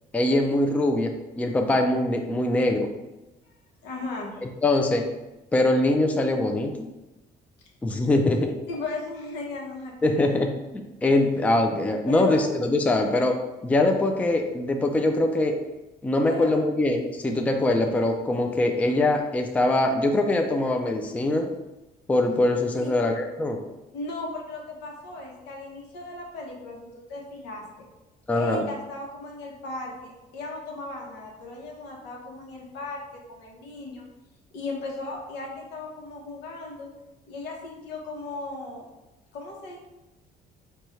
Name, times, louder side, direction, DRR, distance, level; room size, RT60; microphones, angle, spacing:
voice 1, 0.1-2.9 4.6-5.0 5.5-6.9 7.8-8.5 10.0-10.6 11.0-13.4 13.6-15.6 16.0-21.5 22.1-23.6 28.3-28.6, left 2 dB, 10° left, 4 dB, 0.3 m, -23 dB
voice 2, 3.8-4.4 8.7-10.4 12.1-12.4 16.2-16.5 22.7-23.1 23.9-27.6 28.3-33.0 33.3-34.0 34.5-36.9 37.3-38.8 39.3-39.8, left 2 dB, 85° left, -1 dB, 0.9 m, -36 dB
4.2 x 2.3 x 3.1 m, 1.0 s
cardioid pair, 110°, 17 cm